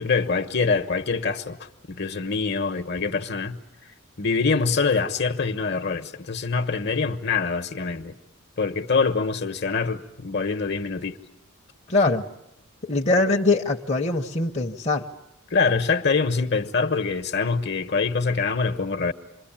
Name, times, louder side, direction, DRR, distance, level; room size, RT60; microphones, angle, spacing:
voice 1, 0.0-1.6 1.9-3.6 4.2-8.2 8.6-11.2 15.5-19.1, left 4 dB, 50° left, 1.2 m, -24 dB
voice 2, 11.9-12.2 12.8-15.1, left 2 dB, 30° left, 1.0 m, -22 dB
28.0 x 22.5 x 8.9 m
head